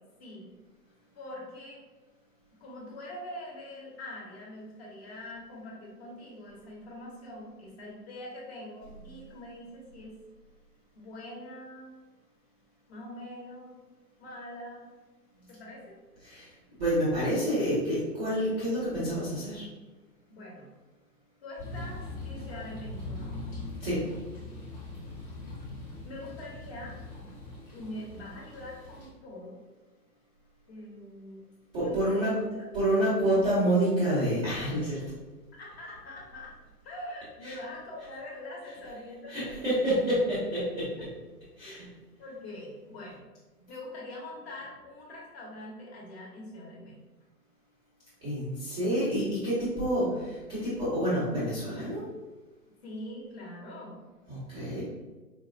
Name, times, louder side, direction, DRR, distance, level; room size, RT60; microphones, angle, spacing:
voice 1, 1.1-1.8 2.6-10.2 10.9-12.0 12.9-13.8 14.2-15.0 15.5-15.9 20.3-20.7 21.4-23.4 24.9-25.0 26.0-27.0 27.7-29.6 30.7-31.4 31.8-32.5 33.2-33.3 35.6-36.6 36.8-39.6 41.6-41.9 42.2-43.2 43.7-47.0 52.8-54.1, left 1 dB, 40° left, -3 dB, 1.1 m, -43 dB
voice 2, 16.8-19.7 23.8-24.0 31.7-32.3 32.7-35.0 37.4-37.6 39.3-40.9 41.6-41.8 48.2-52.0 54.3-54.8, right 1 dB, 5° right, -13 dB, 0.4 m, -28 dB
sound 1, 21.6-29.1, left 2 dB, 15° left, 0.9 m, -41 dB
4.3 x 2.4 x 2.4 m, 1.2 s
figure-of-eight pair, 130°, 50 cm